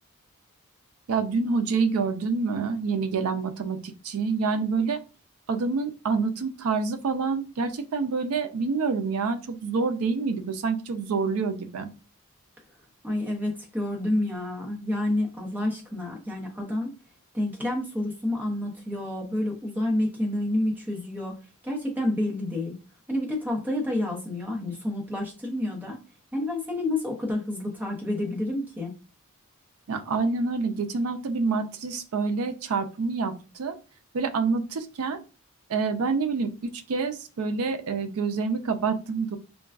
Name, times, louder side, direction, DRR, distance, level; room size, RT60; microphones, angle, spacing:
voice 1, 1.1-5.0 5.5-11.9 29.9-33.7 34.1-35.2 35.7-39.4, right 4 dB, 75° right, 8 dB, 0.4 m, -27 dB
voice 2, 13.0-16.9 17.3-21.3 21.6-22.7 23.1-26.0 26.3-28.9, left 1 dB, 10° right, -1 dB, 0.7 m, -29 dB
3.5 x 2.2 x 2.3 m, 0.34 s
head